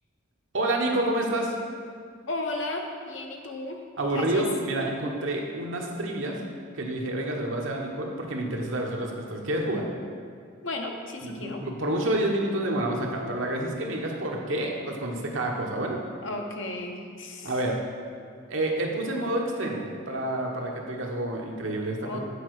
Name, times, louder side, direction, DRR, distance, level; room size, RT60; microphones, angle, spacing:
voice 1, 0.5-1.6 4.0-6.4 6.7-9.9 11.2-16.0 17.4-17.8 18.5-22.2, right 1 dB, 70° right, 0 dB, 1.1 m, -28 dB
voice 2, 2.3-3.8 4.1-4.4 10.6-11.6 16.2-17.5 22.0-22.2, left 2 dB, 65° left, 2 dB, 0.9 m, -34 dB
8.3 x 5.0 x 4.7 m, 2.1 s
head